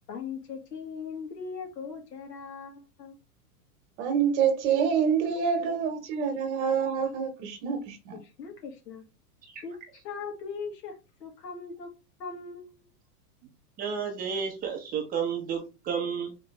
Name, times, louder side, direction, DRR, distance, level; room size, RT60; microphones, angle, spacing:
voice 1, 0.1-3.2 5.3-5.4 8.1-9.0 9.6-9.7 10.0-10.9 11.2-11.9 12.2-12.7, left 5 dB, 85° left, 1.8 m, -39 dB
voice 2, 4.0-8.2, right 7 dB, 45° right, 1.3 m, -26 dB
voice 3, 13.8-16.3, right 6 dB, 20° right, 0.8 m, -31 dB
4.0 x 3.2 x 3.3 m
supercardioid pair, 145°, 47 cm